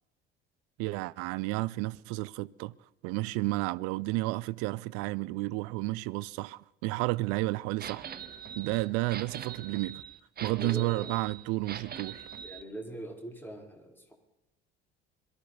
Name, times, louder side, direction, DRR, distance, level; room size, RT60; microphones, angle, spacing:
voice 1, 0.8-2.7 3.0-8.1 8.6-10.0 10.4-12.3, right 21 dB, 50° right, 0.5 m, -31 dB
sound 1, 7.8-12.6, right 8 dB, 30° right, 1.1 m, -42 dB
voice 2, 10.4-11.2 12.4-14.1, right 1 dB, 5° left, 4.1 m, -42 dB
22.5 x 14.0 x 4.1 m
figure-of-eight pair, 60°, 30 cm